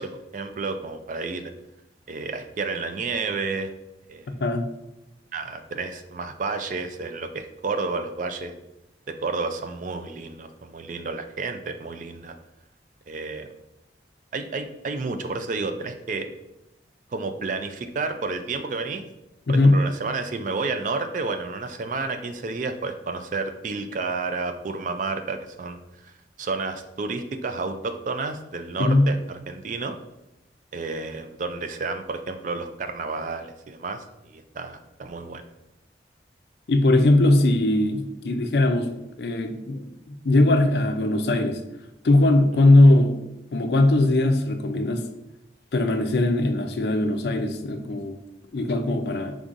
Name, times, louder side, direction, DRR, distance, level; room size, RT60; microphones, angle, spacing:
voice 1, 0.0-1.4 2.1-3.7 4.1-4.3 5.3-8.5 9.2-12.3 13.1-13.5 14.3-16.3 17.1-19.0 19.5-25.8 26.0-26.1 26.4-30.0 30.7-35.4, right 3 dB, 45° right, 8 dB, 0.3 m, -31 dB
voice 2, 19.5-19.8 28.8-29.1 36.7-38.9 39.2-41.6 42.0-43.2 43.5-45.0 45.7-48.2 48.5-49.4, left 2 dB, 60° left, 7 dB, 0.4 m, -20 dB
5.3 x 3.5 x 2.5 m, 0.92 s
head